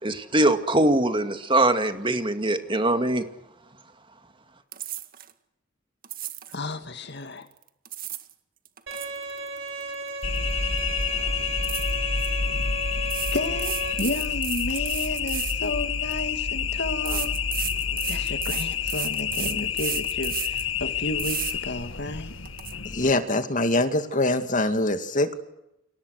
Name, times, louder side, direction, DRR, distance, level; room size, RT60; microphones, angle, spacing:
voice 1, 0.0-3.2, right 1 dB, 25° right, 8 dB, 2.2 m, -22 dB
sound 1, 4.7-5.3 6.0-6.6 7.6-8.3 8.7-10.5 10.8-11.0 11.6-12.3 13.1-16.2 17.1-20.7 21.2-21.5 22.0-22.1 22.5-22.7, right 12 dB, 50° right, 1.9 m, -34 dB
voice 2, 6.5-7.5 13.3-17.4 18.1-22.3, left 2 dB, 60° left, 9 dB, 2.2 m, -32 dB
Bowed string instrument, 8.9-13.9, right 3 dB, 80° right, 6.6 m, -35 dB
sound 2, 10.2-23.1, left 6 dB, 90° left, 1.8 m, -28 dB
voice 3, 22.9-25.3, left 2 dB, 40° left, 8 dB, 2.4 m, -23 dB
30.0 x 27.5 x 6.6 m, 0.84 s
head